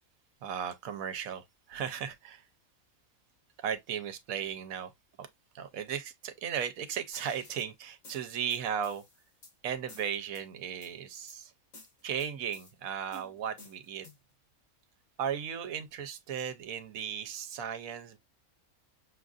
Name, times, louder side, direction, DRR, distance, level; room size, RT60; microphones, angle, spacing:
voice 1, 0.4-2.5 3.6-4.9 5.2-5.3 5.5-9.0 9.6-11.5 12.0-14.1 15.2-18.2, right 8 dB, 75° right, 1.1 m, -36 dB
sound 1, 7.1-7.7 8.0-9.5 9.9-10.4 10.8-11.4 11.7-12.7 13.1-14.3, left 2 dB, 60° left, 2.0 m, -53 dB
6.3 x 2.5 x 2.4 m
omnidirectional pair, 1.5 m